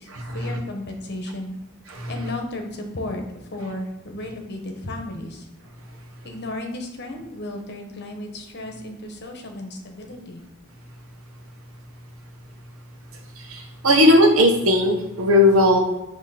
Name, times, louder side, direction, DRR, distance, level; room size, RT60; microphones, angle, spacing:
voice 1, 0.0-1.6 2.1-3.2 3.5-5.5 6.2-10.4, left 1 dB, 50° left, 3 dB, 1.0 m, -34 dB
voice 2, 13.5-15.8, left 1 dB, 65° right, 3 dB, 1.1 m, -17 dB
6.3 x 3.0 x 5.7 m, 0.95 s
head